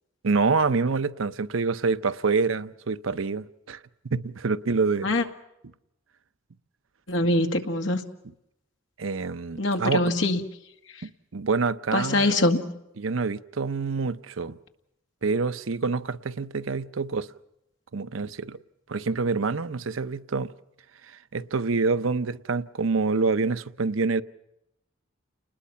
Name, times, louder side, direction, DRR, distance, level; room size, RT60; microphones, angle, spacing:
voice 1, 0.2-3.8 4.1-5.1 9.0-10.0 11.3-12.3 13.0-14.6 15.2-17.3 17.9-18.6 18.9-20.5 21.3-24.2, right 4 dB, 85° right, 0.7 m, -26 dB
voice 2, 7.1-8.0 9.6-10.4 11.9-12.8, left 2 dB, 70° left, 1.9 m, -23 dB
30.0 x 20.5 x 5.7 m
head